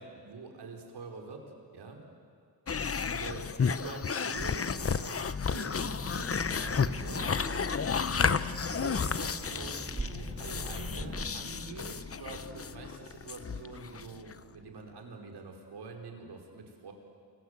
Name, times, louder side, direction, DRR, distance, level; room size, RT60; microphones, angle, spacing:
voice 1, 0.0-1.5 1.7-2.0 3.0-7.7 8.2-16.9, right 4 dB, 90° right, 2 dB, 4.6 m, -45 dB
sound 1, 2.7-14.4, left 6 dB, 35° left, 0.8 m, -32 dB
Child speech kid speaking, 5.8-11.4, right 2 dB, 20° right, 2.0 m, -43 dB
29.0 x 25.0 x 8.2 m, 2.2 s
wide cardioid pair, 100°, 39 cm